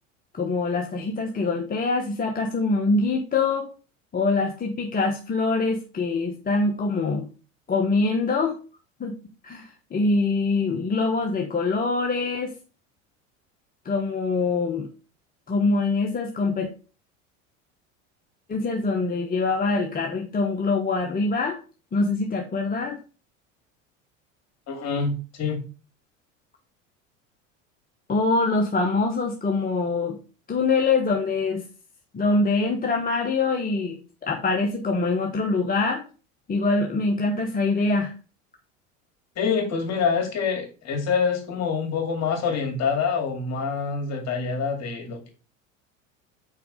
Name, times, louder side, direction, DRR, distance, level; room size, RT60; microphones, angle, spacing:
voice 1, 0.3-3.7 4.1-7.3 7.7-8.6 9.0-9.2 9.4-12.5 13.8-14.9 15.5-16.7 18.5-21.6 21.9-23.0 28.1-30.2 30.5-31.7 32.1-36.0 36.5-38.1, left 3 dB, 25° left, 2 dB, 0.9 m, -24 dB
voice 2, 24.7-25.6 39.4-45.3, left 5 dB, 45° left, 2 dB, 2.5 m, -26 dB
4.6 x 4.6 x 5.0 m, 0.34 s
hypercardioid pair, 80°, 38 cm